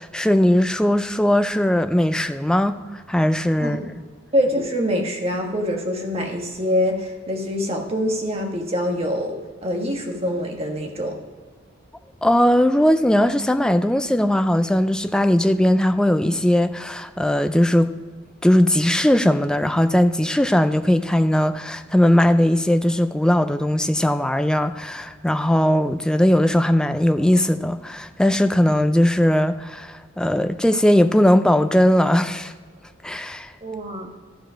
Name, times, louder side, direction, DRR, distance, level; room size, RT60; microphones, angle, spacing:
voice 1, 0.0-3.8 12.2-17.9 18.4-32.5 33.0-33.5, left 1 dB, 5° left, 0.3 m, -19 dB
voice 2, 4.3-11.2 33.6-34.1, equal, 30° right, 1.4 m, -25 dB
13.5 x 4.9 x 5.1 m
head